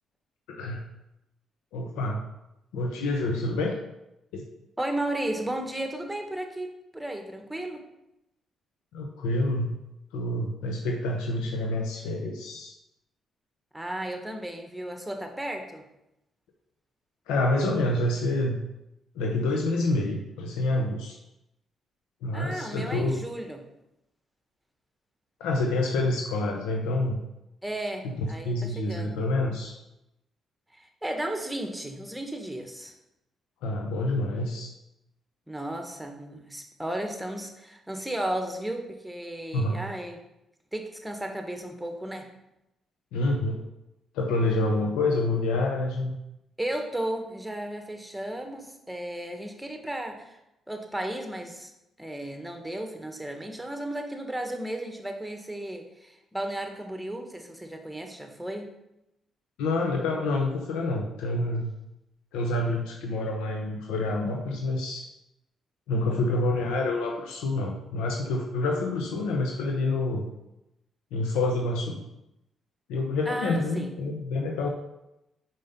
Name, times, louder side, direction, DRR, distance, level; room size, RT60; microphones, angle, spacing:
voice 1, 0.5-0.8 1.7-2.2 2.7-3.7 4.3-4.4 8.9-9.7 10.1-12.7 17.3-18.6 19.1-21.2 22.2-23.2 25.4-27.2 28.0-29.7 33.6-34.7 39.5-39.8 43.1-43.6 44.1-46.1 59.6-61.7 62.3-65.1 65.9-70.3 71.1-72.0 72.9-74.7, left 2 dB, 90° left, 1 dB, 0.8 m, -27 dB
voice 2, 4.8-7.8 13.7-15.8 22.3-23.6 27.6-29.1 30.7-32.9 35.5-40.2 40.7-42.2 46.6-50.4 50.7-51.7 52.0-58.7 73.2-73.9, right 1 dB, 5° right, 4 dB, 1.5 m, -34 dB
5.5 x 5.4 x 5.3 m, 0.89 s
supercardioid pair, 60°, 0 cm